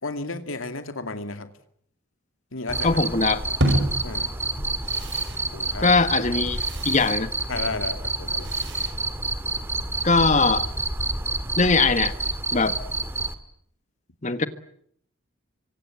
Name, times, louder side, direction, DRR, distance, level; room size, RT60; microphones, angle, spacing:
voice 1, 0.0-1.5 2.5-3.0 4.0-4.3 5.5-5.9 7.5-8.5, left 3 dB, 75° left, 8 dB, 2.5 m, -33 dB
Cricket, 2.7-13.3, right 2 dB, 10° right, 1.9 m, -28 dB
voice 2, 2.8-3.4 5.8-7.3 10.0-10.7 11.6-12.1 12.5-12.8 14.2-14.5, left 3 dB, 35° left, 11 dB, 1.5 m, -21 dB
sound 1, 3.6-9.8, right 1 dB, 55° right, 5.7 m, -31 dB
26.0 x 25.0 x 8.6 m, 0.68 s
head